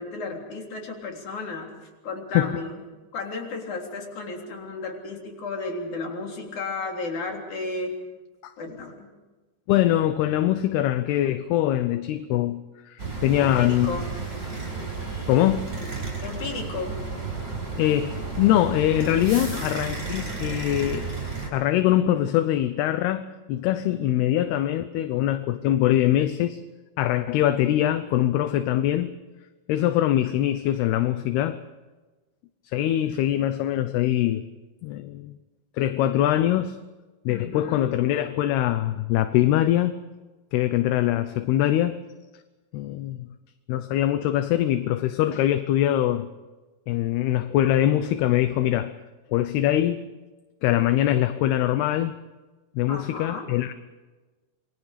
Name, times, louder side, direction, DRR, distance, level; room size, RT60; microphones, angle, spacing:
voice 1, 0.0-1.7 2.0-2.8 3.1-7.9 8.6-9.1 13.4-14.1 16.2-17.0 19.5-19.7 37.3-37.9 52.9-53.6, left 3 dB, 45° left, 1 dB, 4.6 m, -34 dB
voice 2, 9.7-14.0 15.3-15.7 17.8-21.1 21.5-26.6 27.0-29.1 29.7-31.6 32.7-34.4 34.8-35.4 35.8-36.8 37.3-40.0 40.5-42.0 42.7-43.3 43.7-46.3 46.9-48.9 49.3-50.0 50.6-52.2 52.8-53.7, left 13 dB, 75° left, 11 dB, 2.6 m, -23 dB
sound 1, 13.0-21.5, right 4 dB, 20° right, 6.8 m, -32 dB
27.5 x 23.0 x 5.1 m, 1.2 s
omnidirectional pair, 5.0 m